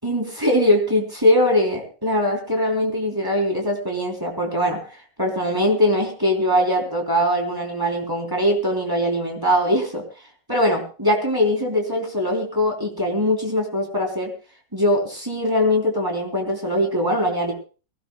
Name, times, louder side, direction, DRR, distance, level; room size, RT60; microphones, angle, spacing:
voice 1, 0.0-10.0 10.5-14.3 14.7-17.5, left 1 dB, 10° right, 1 dB, 3.7 m, -21 dB
22.5 x 17.0 x 2.3 m, 0.36 s
omnidirectional pair, 2.2 m